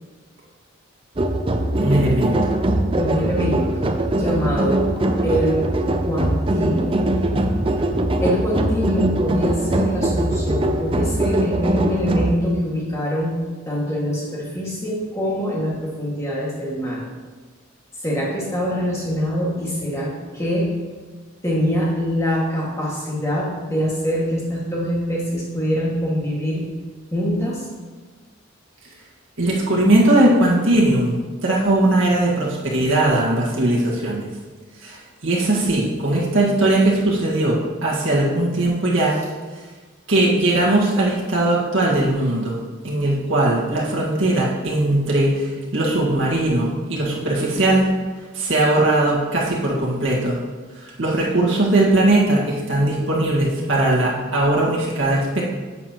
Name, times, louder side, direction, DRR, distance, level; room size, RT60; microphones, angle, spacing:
sound 1, 1.2-12.3, right 1 dB, 25° right, 0.5 m, -21 dB
voice 1, 1.8-2.4 29.4-34.3 34.8-39.2 40.1-42.6 42.8-47.9 48.3-50.4 50.8-55.4, right 1 dB, 65° right, -5 dB, 1.8 m, -19 dB
voice 2, 2.9-4.9 5.2-5.7 6.0-7.1 8.2-13.3 13.7-17.0 18.0-20.7 21.4-26.7 27.1-27.7, equal, 15° left, -5 dB, 1.9 m, -24 dB
10.0 x 8.4 x 3.0 m, 1.4 s
head